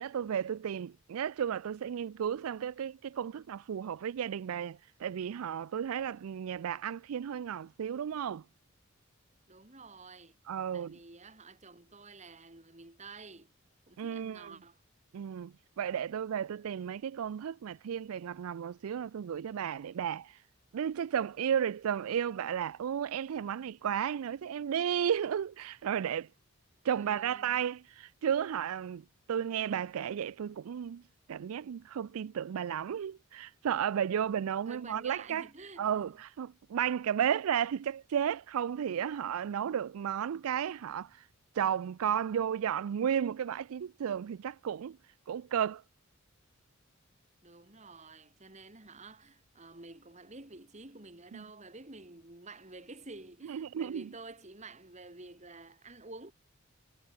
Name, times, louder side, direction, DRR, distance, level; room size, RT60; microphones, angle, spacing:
voice 1, 0.0-8.4 10.5-11.0 14.0-14.5 15.1-20.4 20.7-26.3 26.8-29.0 29.3-31.0 31.3-35.5 35.8-41.2 41.5-45.0 45.3-45.8 51.3-51.4 53.5-54.1, right 8 dB, 90° right, 0.4 m, -33 dB
voice 2, 9.5-10.4 10.7-13.5 13.9-14.8 26.9-27.6 34.7-36.0 47.4-56.3, right 3 dB, 35° right, 2.8 m, -50 dB
head